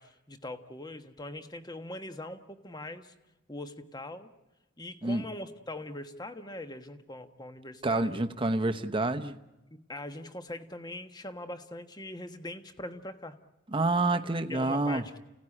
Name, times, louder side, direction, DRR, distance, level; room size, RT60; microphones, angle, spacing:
voice 1, 0.0-3.1 3.5-4.3 4.8-8.1 9.7-13.4 14.5-15.2, left 1 dB, 20° left, 1.3 m, -42 dB
voice 2, 7.8-9.3 13.7-15.0, right 2 dB, 25° right, 1.0 m, -28 dB
29.5 x 17.0 x 9.9 m
head